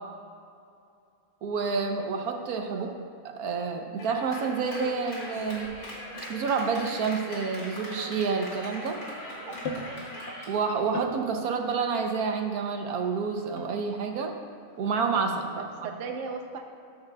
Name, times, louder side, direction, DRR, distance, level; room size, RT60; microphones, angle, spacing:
voice 1, 1.4-2.9 3.4-5.7 6.3-9.0 10.5-14.3 14.8-15.6, right 5 dB, 80° right, 4 dB, 1.3 m, -29 dB
voice 2, 2.7-3.1 9.5-10.1 15.6-16.6, right 5 dB, 60° right, 3 dB, 1.1 m, -39 dB
Clapping, 4.0-10.5, left 1 dB, 75° left, 3.0 m, -40 dB
sound 1, 5.6-10.4 10.8-11.3 11.6-11.8 12.2-12.3 13.3-14.4 14.7-15.5, left 2 dB, 50° left, 1.3 m, -42 dB
13.0 x 11.0 x 2.4 m, 2.4 s
omnidirectional pair, 1.6 m